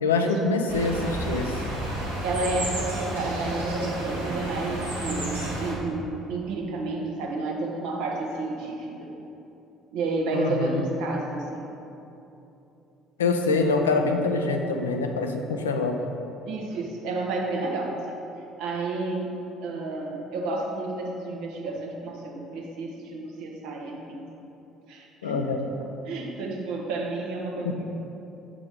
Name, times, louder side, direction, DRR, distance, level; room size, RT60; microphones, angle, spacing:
voice 1, 0.0-1.6 10.3-10.9 13.2-16.0 25.2-25.7 27.7-27.8, left 3 dB, 80° left, 4 dB, 0.4 m, -25 dB
sound 1, 0.7-5.7, right 1 dB, 85° right, 1.1 m, -31 dB
voice 2, 2.2-8.9 9.9-11.6 13.6-13.7 16.5-18.2 18.6-19.3 19.6-24.2 24.9-25.5 26.0-27.8, right 2 dB, 65° right, -1 dB, 0.9 m, -31 dB
7.5 x 3.8 x 4.9 m, 2.9 s
figure-of-eight pair, 55°, 0 cm